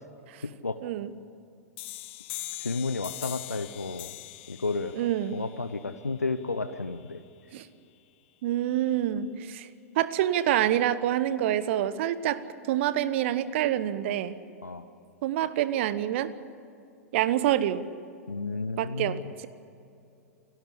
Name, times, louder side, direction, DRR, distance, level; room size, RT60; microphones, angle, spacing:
voice 1, 0.4-0.8 2.6-4.1 4.5-7.2 14.6-14.9 18.3-19.2, left 3 dB, 85° left, 11 dB, 0.7 m, -32 dB
sound 1, 1.8-7.2, left 18 dB, 45° left, 0.7 m, -42 dB
voice 2, 5.0-5.4 7.5-7.7 8.4-9.7 10.0-12.4 12.7-14.4 15.2-16.3 17.1-17.8 18.8-19.5, right 12 dB, 50° right, 14 dB, 1.0 m, -27 dB
28.5 x 12.5 x 8.3 m, 2.6 s
figure-of-eight pair, 95°, 8 cm